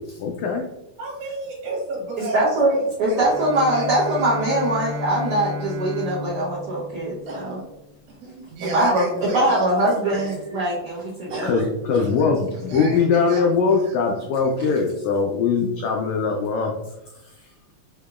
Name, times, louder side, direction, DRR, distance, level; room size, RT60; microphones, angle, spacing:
voice 1, 0.1-0.6 11.4-16.7, left 5 dB, 90° left, 1 dB, 1.6 m, -21 dB
voice 2, 1.0-2.4 2.7-3.9 4.2-4.4 7.3-7.6 8.2-10.4 11.3-11.6 11.9-14.5, right 2 dB, 70° right, -4 dB, 2.7 m, -34 dB
voice 3, 2.3-7.6 8.7-9.0 9.3-11.5, right 1 dB, 90° right, -8 dB, 1.2 m, -22 dB
Bowed string instrument, 3.2-8.1, left 2 dB, 55° right, 2.0 m, -33 dB
6.4 x 2.9 x 2.4 m, 0.94 s
omnidirectional pair, 3.8 m